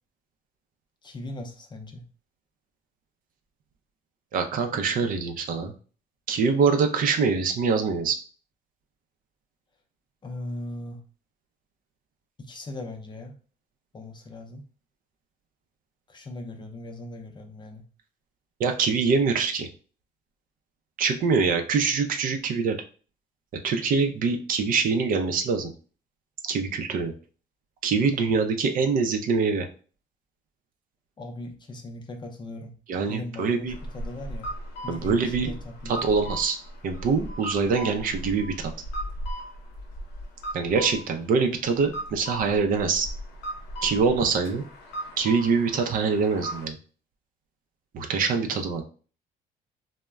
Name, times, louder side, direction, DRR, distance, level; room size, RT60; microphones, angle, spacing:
voice 1, 1.0-2.0 10.2-11.0 12.4-13.4 13.9-14.6 16.1-17.9 31.2-32.7 33.1-34.5 34.8-36.0, left 1 dB, 25° left, 4 dB, 0.5 m, -39 dB
voice 2, 4.3-5.7 6.3-8.2 18.6-19.7 21.0-22.8 23.6-25.7 26.4-27.1 27.8-29.7 32.9-33.7 34.9-35.5 35.9-36.6 36.8-38.7 40.5-43.1 43.8-44.6 45.2-46.8 47.9-48.8, right 5 dB, 55° right, 5 dB, 0.5 m, -24 dB
sound 1, 33.7-46.7, right 1 dB, 80° left, 0.6 m, -37 dB
2.1 x 2.1 x 3.4 m, 0.39 s
cardioid pair, 110°, 17 cm